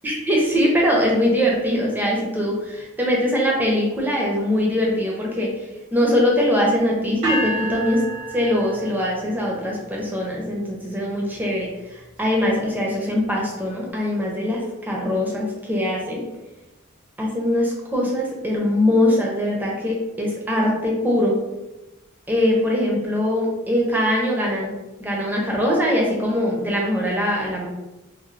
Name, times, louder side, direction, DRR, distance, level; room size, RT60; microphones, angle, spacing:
voice 1, 0.0-5.6 5.9-8.0 8.3-16.2 17.2-21.3 22.3-24.7 25.0-27.7, left 1 dB, 10° right, -3 dB, 0.5 m, -22 dB
sound 1, 7.2-9.3, right 1 dB, 85° right, 1.4 m, -29 dB
3.1 x 2.0 x 2.4 m, 1.0 s
head